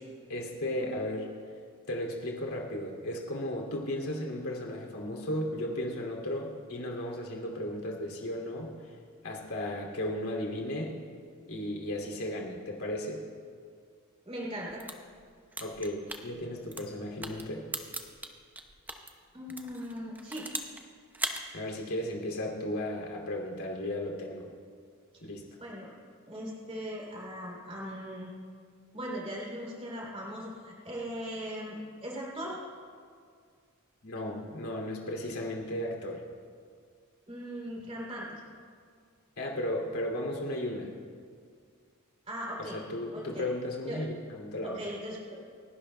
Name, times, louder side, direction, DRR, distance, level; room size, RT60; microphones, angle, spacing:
voice 1, 0.3-1.2 1.9-9.0 9.2-10.9 11.5-13.2 15.6-16.0 16.2-17.6 21.5-24.5 25.2-25.4 34.0-36.2 39.4-40.9 42.6-44.8, left 1 dB, 75° left, -1 dB, 2.6 m, -35 dB
voice 2, 14.2-14.8 19.3-20.4 25.6-25.9 26.3-28.3 28.9-32.6 37.3-38.3 42.3-42.8 43.1-43.5 43.9-44.0 44.6-45.4, equal, 30° right, -4 dB, 3.0 m, -39 dB
sound 1, 14.7-19.1 19.5-20.8 21.1-21.4, right 2 dB, 10° right, 0.8 m, -38 dB
30.0 x 12.0 x 2.2 m, 2.1 s
head